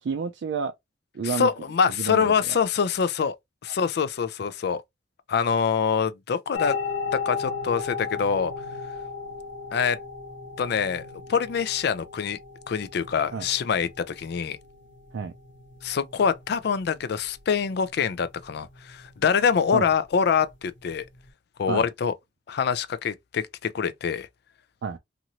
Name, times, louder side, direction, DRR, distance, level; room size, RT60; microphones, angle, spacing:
voice 1, 0.0-0.7 1.1-1.5 1.9-2.6 13.3-13.5 15.1-15.3 19.7-19.9 21.7-21.9 24.8-25.0, right 5 dB, 70° right, 0.4 m, -30 dB
voice 2, 1.2-3.4 3.6-4.8 5.3-6.8 7.1-8.5 9.7-10.0 10.6-12.4 12.7-14.6 15.8-21.1 21.6-22.1 22.5-24.3, left 6 dB, 60° left, 0.4 m, -25 dB
sound 1, 6.5-21.3, left 5 dB, 85° left, 0.9 m, -37 dB
2.9 x 2.6 x 2.7 m
head